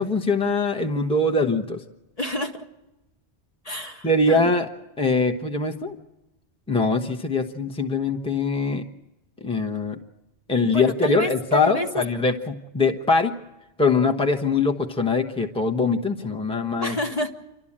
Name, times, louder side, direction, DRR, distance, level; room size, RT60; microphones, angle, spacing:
voice 1, 0.0-1.8 4.0-4.6 5.0-6.0 6.7-8.8 9.4-10.0 10.5-13.3 13.8-17.0, left 3 dB, 5° left, 4 dB, 1.0 m, -22 dB
voice 2, 2.2-2.7 3.6-4.5 10.7-12.0 16.8-17.3, equal, 35° left, 3 dB, 1.2 m, -29 dB
28.0 x 12.5 x 8.7 m, 1.0 s
omnidirectional pair, 1.1 m